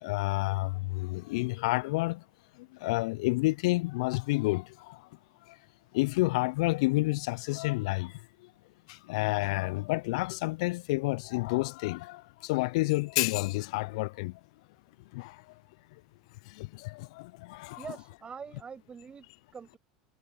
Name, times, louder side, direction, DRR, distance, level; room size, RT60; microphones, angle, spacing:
voice 1, 0.0-2.2 2.6-5.0 5.5-5.6 5.9-8.2 8.9-14.4 15.1-15.4 16.5-17.8, left 23 dB, 60° left, 0.8 m, -30 dB
voice 2, 17.7-19.8, right 6 dB, 25° right, 7.2 m, -44 dB
figure-of-eight pair, 80°, 4 cm